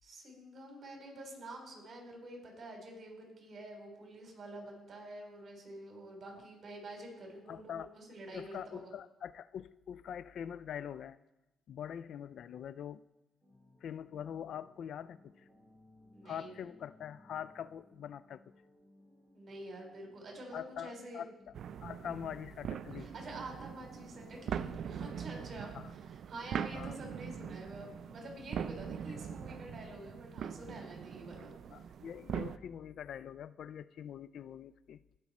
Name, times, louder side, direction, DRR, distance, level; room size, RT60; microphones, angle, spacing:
voice 1, 0.0-8.9 16.1-16.6 19.3-21.3 23.0-31.5, right 1 dB, 50° right, 1 dB, 3.6 m, -48 dB
voice 2, 7.5-7.9 8.3-11.2 11.7-13.0 13.8-15.4 16.2-18.4 20.5-21.5 21.8-23.1 25.7-25.9 26.7-27.0 29.1-29.2 31.7-35.0, left 9 dB, 65° left, 17 dB, 0.3 m, -44 dB
sound 1, 13.4-29.5, left 1 dB, 10° right, 3.7 m, -63 dB
sound 2, 21.5-32.6, right 8 dB, 65° right, 0.4 m, -42 dB
17.5 x 6.1 x 4.2 m, 0.96 s
cardioid pair, 90°, 0 cm